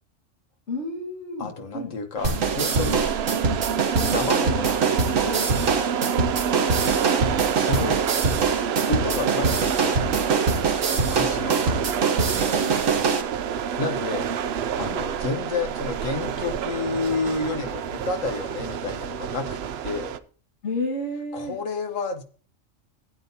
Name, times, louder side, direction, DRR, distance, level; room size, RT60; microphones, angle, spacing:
voice 1, 0.7-1.9 6.1-6.3 12.6-12.8 14.8-15.0 20.6-21.6, left 1 dB, 60° left, 0 dB, 2.0 m, -31 dB
voice 2, 1.4-3.1 3.9-5.5 7.2-8.0 8.9-10.0 10.9-11.6 13.8-14.3 14.7-19.6 19.8-20.1 21.3-22.2, left 3 dB, 80° left, 6 dB, 1.6 m, -30 dB
sound 1, 2.2-20.2, right 8 dB, 60° right, 0.7 m, -28 dB
sound 2, 2.2-13.2, right 4 dB, 80° right, 1.6 m, -24 dB
15.5 x 8.8 x 2.7 m, 0.42 s
omnidirectional pair, 1.3 m